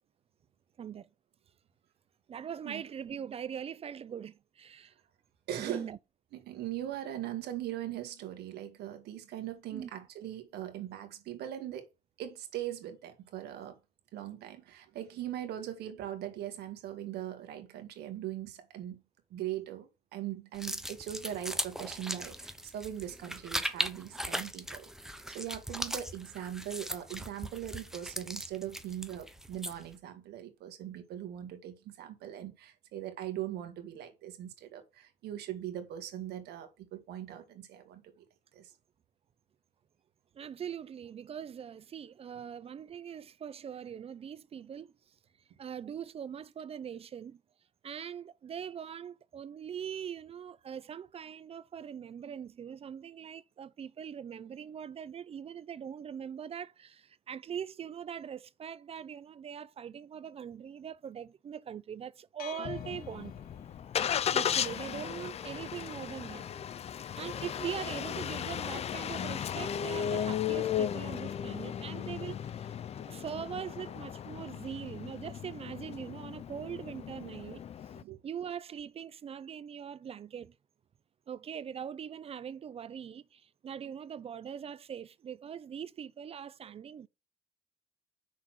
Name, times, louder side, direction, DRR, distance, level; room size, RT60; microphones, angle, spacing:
voice 1, 0.8-1.1 2.3-4.9 5.6-6.0 9.7-9.9 40.3-45.1 45.6-47.4 47.8-63.3 64.3-66.5 67.2-72.7 73.1-77.6 78.2-80.5 81.3-87.1, right 8 dB, 35° right, 0.5 m, -42 dB
voice 2, 5.5-5.9 6.3-11.9 12.2-13.8 14.1-19.0 19.3-38.0 38.5-38.7 78.0-78.2, right 11 dB, 75° right, 1.8 m, -40 dB
sound 1, 20.5-29.9, right 1 dB, 5° right, 0.8 m, -39 dB
sound 2, 62.4-64.4, left 8 dB, 60° left, 1.2 m, -45 dB
Engine starting, 62.8-78.0, left 9 dB, 40° left, 0.5 m, -36 dB
6.1 x 4.2 x 6.3 m
cardioid pair, 110°, 17 cm